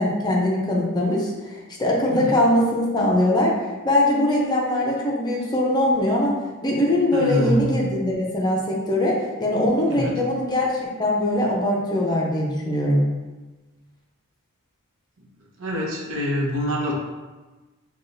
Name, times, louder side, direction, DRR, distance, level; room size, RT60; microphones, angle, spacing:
voice 1, 0.0-3.6 3.8-13.0, left 1 dB, 20° left, -3 dB, 0.6 m, -22 dB
voice 2, 7.1-7.8 9.9-10.1 15.6-16.9, equal, 60° right, -3 dB, 0.9 m, -25 dB
5.9 x 2.3 x 2.6 m, 1.2 s
head